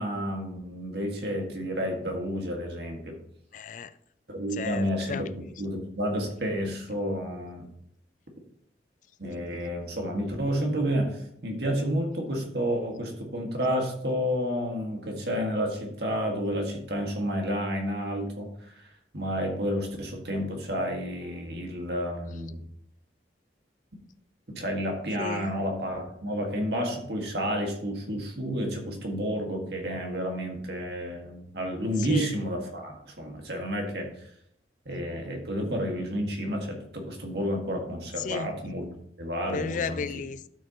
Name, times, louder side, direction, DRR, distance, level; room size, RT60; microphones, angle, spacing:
voice 1, 0.0-3.2 4.3-7.7 9.2-18.7 19.1-22.6 24.5-34.1 34.9-38.9 39.2-40.0, equal, 65° right, 1.9 m, -30 dB
voice 2, 3.5-3.9 4.6-5.2 25.2-25.5 32.1-32.3 38.2-38.5 39.5-40.5, left 5 dB, 45° left, 0.3 m, -33 dB
12.5 x 6.7 x 3.0 m
head